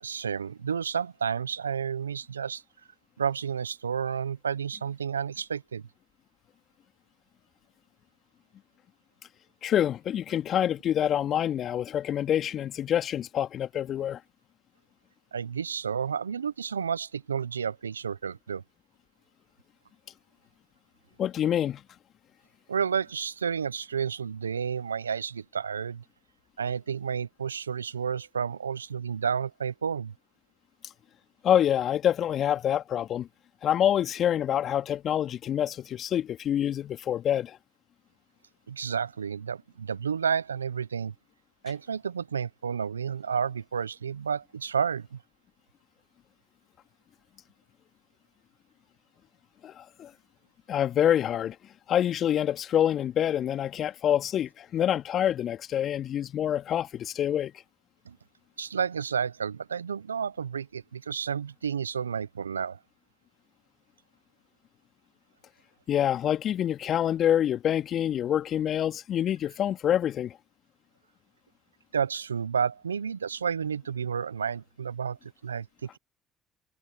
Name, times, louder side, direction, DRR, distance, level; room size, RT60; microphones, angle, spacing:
voice 1, 0.0-2.6 3.2-5.8 15.3-18.6 22.7-26.0 26.6-30.1 38.7-41.1 41.6-45.2 58.0-58.2 58.6-62.8 71.9-75.7, right 7 dB, 90° right, 0.9 m, -31 dB
voice 2, 9.6-14.2 21.2-21.8 31.4-33.3 33.6-37.6 49.6-50.1 50.7-51.6 51.9-57.5 65.9-70.4, left 10 dB, 55° left, 2.4 m, -26 dB
figure-of-eight pair, 55°, 0 cm